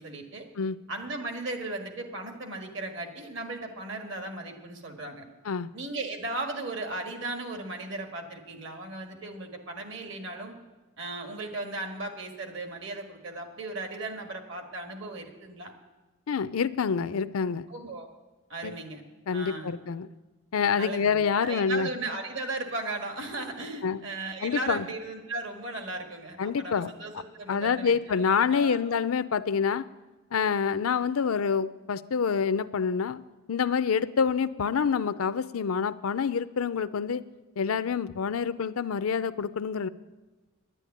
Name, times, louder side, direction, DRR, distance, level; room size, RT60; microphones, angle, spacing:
voice 1, 0.0-0.5 0.9-5.3 5.7-10.5 11.0-15.7 17.7-18.1 18.5-19.0 19.3-19.7 20.8-28.8, right 2 dB, 60° right, 4 dB, 1.8 m, -36 dB
voice 2, 16.3-17.7 18.6-18.8 19.3-20.1 20.5-21.9 23.8-24.0 24.4-24.8 26.4-26.9 27.5-29.9 30.3-33.2 33.5-37.2 37.6-39.9, left 6 dB, 90° left, 15 dB, 0.5 m, -27 dB
10.5 x 9.9 x 9.3 m, 1.2 s
head